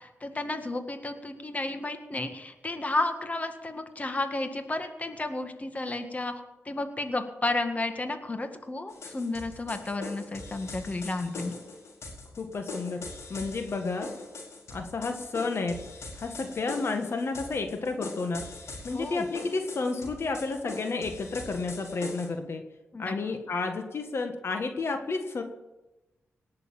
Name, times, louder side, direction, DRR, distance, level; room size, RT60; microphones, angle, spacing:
voice 1, 0.0-6.3 6.6-11.5 18.9-19.3 22.9-23.1, left 2 dB, 30° left, 7 dB, 1.8 m, -32 dB
sound 1, 8.9-22.3, left 3 dB, 75° left, 4.5 m, -42 dB
voice 2, 12.4-13.0 13.3-14.1 14.7-15.8 16.2-18.4 18.8-22.6 23.0-25.4, left 3 dB, 60° left, 5 dB, 1.6 m, -31 dB
19.0 x 6.8 x 8.9 m, 1.0 s
cardioid pair, 65°, 5 cm